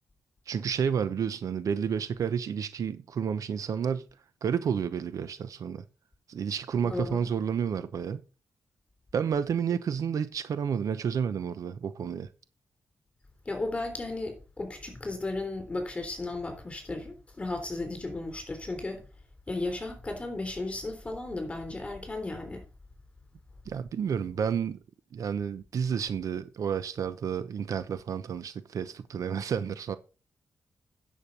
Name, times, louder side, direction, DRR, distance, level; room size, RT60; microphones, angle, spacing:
voice 1, 0.5-4.1 4.4-5.8 6.3-8.2 9.1-12.3 23.7-24.8 25.1-30.0, right 7 dB, 65° right, 0.9 m, -30 dB
voice 2, 6.8-7.2 13.5-19.1 19.5-22.6, left 2 dB, 20° left, 3.5 m, -35 dB
10.0 x 6.5 x 5.3 m
wide cardioid pair, 155°, 6 cm